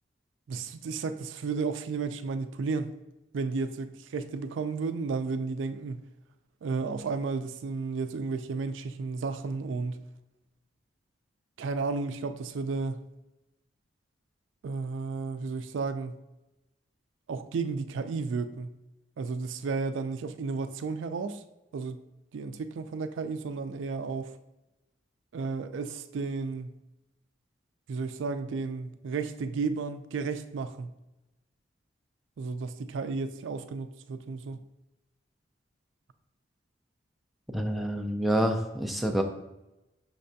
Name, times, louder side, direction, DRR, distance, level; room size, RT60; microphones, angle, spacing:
voice 1, 0.5-2.9 3.3-6.0 6.6-10.0 11.6-13.0 14.6-16.2 17.3-18.7 19.2-21.4 21.7-22.0 22.3-24.4 25.3-26.7 27.9-30.9 32.4-34.6, right 4 dB, 80° right, 0.4 m, -33 dB
voice 2, 37.5-39.2, equal, ahead, 0.3 m, -27 dB
5.8 x 3.3 x 2.7 m
head